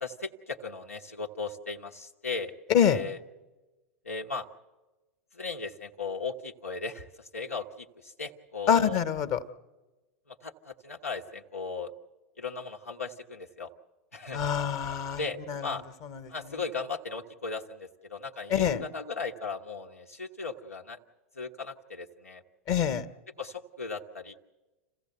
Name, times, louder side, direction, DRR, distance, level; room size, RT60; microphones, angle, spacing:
voice 1, 0.0-2.5 2.8-3.2 4.0-4.5 5.3-9.0 10.3-11.9 12.4-13.7 14.1-14.5 15.2-15.8 16.3-21.0 21.3-22.4 23.4-24.4, left 4 dB, 90° left, -1 dB, 1.2 m, -37 dB
voice 2, 8.7-9.4 14.3-15.2 15.5-15.7 16.0-16.3 18.5-18.8 22.7-23.0, left 8 dB, 45° left, 11 dB, 1.2 m, -25 dB
27.5 x 15.0 x 7.9 m, 1.2 s
figure-of-eight pair, 90°, 8 cm